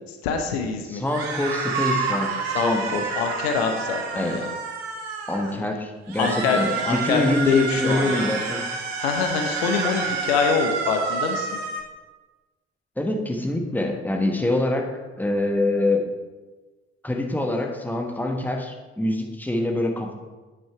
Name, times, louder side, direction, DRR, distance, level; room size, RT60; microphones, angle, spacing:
voice 1, 0.2-1.0 2.5-4.5 5.5-5.6 6.2-6.6 6.8-8.3 9.0-11.5, left 6 dB, 70° left, 4 dB, 0.8 m, -25 dB
voice 2, 0.9-2.3 2.6-3.1 4.1-4.4 5.3-8.6 13.0-14.9 15.2-16.0 17.0-20.1, left 1 dB, 5° left, 2 dB, 1.3 m, -25 dB
sound 1, 1.1-5.6 6.1-11.8, right 4 dB, 75° right, 0.9 m, -29 dB
8.8 x 6.2 x 4.6 m, 1.3 s
figure-of-eight pair, 40°, 32 cm